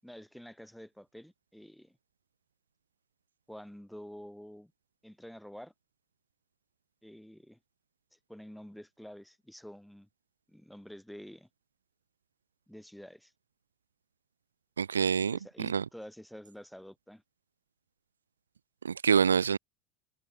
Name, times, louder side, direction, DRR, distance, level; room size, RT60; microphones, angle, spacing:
voice 1, 0.0-2.0 3.5-4.7 5.0-5.7 7.0-7.6 8.1-10.1 10.5-11.5 12.7-13.3 15.3-17.2, equal, ahead, 7.7 m, -49 dB
voice 2, 14.8-15.8 18.8-19.6, right 7 dB, 80° right, 0.8 m, -26 dB
figure-of-eight pair, 80°, 0 cm